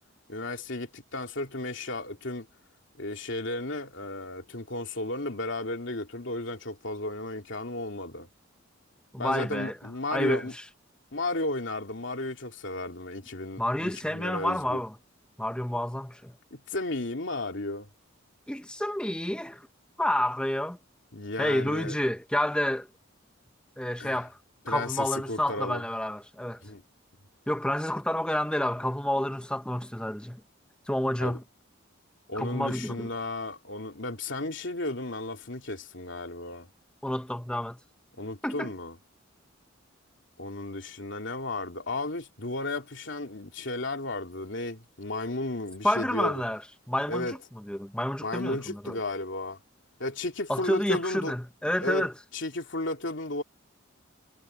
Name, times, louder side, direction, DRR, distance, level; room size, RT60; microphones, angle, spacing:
voice 1, 0.3-2.5 3.0-8.3 9.2-10.5 11.1-14.8 16.5-17.9 21.1-22.0 24.0-24.2 24.7-25.8 26.6-26.8 31.2-31.4 32.3-36.7 38.2-38.9 40.4-46.4 47.1-47.4 48.2-49.6 50.0-51.3 51.8-52.1 52.3-53.4, left 2 dB, 65° left, 2.6 m, -34 dB
voice 2, 9.1-9.8 10.1-10.6 13.6-15.0 15.4-16.3 18.5-19.7 20.0-20.8 21.4-22.9 23.8-24.4 24.7-26.6 27.5-30.4 30.9-31.4 32.3-33.1 37.0-37.8 38.4-38.7 45.8-46.6 46.9-47.4 47.7-49.0 50.5-52.1, left 1 dB, 5° left, 0.9 m, -29 dB
head